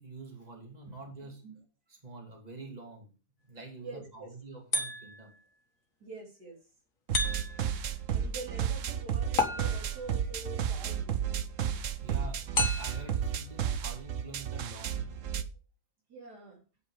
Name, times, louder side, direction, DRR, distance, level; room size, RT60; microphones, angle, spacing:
voice 1, 0.0-1.4 1.9-3.1 3.4-5.3 12.0-12.4 12.8-15.2, right 3 dB, 25° right, 1 dB, 2.8 m, -46 dB
voice 2, 1.2-1.6 3.8-4.3 6.0-6.6 8.1-11.4 13.1-13.2 16.1-16.6, right 3 dB, 80° right, -1 dB, 4.2 m, -46 dB
sound 1, 4.7-5.4 7.1-7.8 9.4-10.1 12.6-13.2, left 3 dB, 55° left, 2.0 m, -32 dB
sound 2, 7.1-15.4, right 8 dB, 55° right, 1.1 m, -32 dB
9.8 x 8.7 x 4.9 m, 0.34 s
omnidirectional pair, 1.7 m